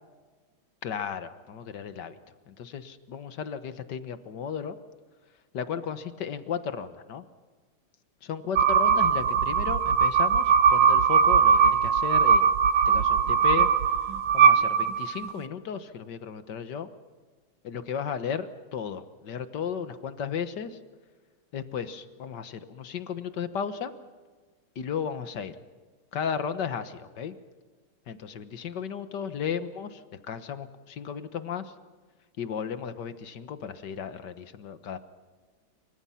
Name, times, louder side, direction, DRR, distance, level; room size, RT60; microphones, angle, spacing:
voice 1, 0.8-2.2 2.5-4.8 5.5-7.2 8.2-12.5 12.9-13.9 14.3-16.9 17.6-20.8 21.5-23.9 24.8-25.6 26.1-27.4 28.1-31.7 32.4-35.0, left 7 dB, 60° left, 11 dB, 1.8 m, -34 dB
sound 1, 8.6-15.3, right 6 dB, 80° right, 1.8 m, -21 dB
28.0 x 25.0 x 5.8 m, 1.4 s
omnidirectional pair, 2.3 m